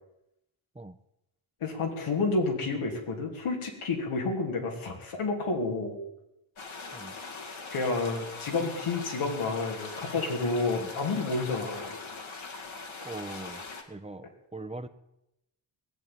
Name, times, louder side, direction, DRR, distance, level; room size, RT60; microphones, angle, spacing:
voice 1, 1.6-6.0 7.7-11.9, left 3 dB, 90° left, 1 dB, 3.4 m, -30 dB
sound 1, 6.6-13.8, left 4 dB, 70° left, 2.4 m, -41 dB
voice 2, 13.0-13.6 13.9-14.9, right 2 dB, 15° right, 9 dB, 1.2 m, -41 dB
18.5 x 7.7 x 8.9 m, 0.87 s
cardioid pair, 60°, 49 cm